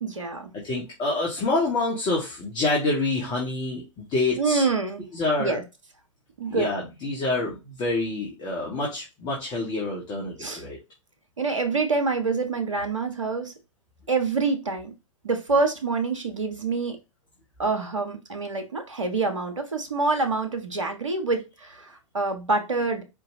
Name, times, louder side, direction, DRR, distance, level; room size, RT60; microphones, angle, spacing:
voice 1, 0.0-0.5 4.4-5.0 5.4-5.6 6.4-6.7 10.4-10.6 11.4-13.5 14.1-14.9 15.2-17.0 17.6-23.0, right 3 dB, 75° right, 1.3 m, -26 dB
voice 2, 0.5-4.6 5.1-5.6 6.5-10.8, left 2 dB, 25° left, 1.8 m, -27 dB
5.1 x 3.6 x 2.8 m
figure-of-eight pair, 100°, 17 cm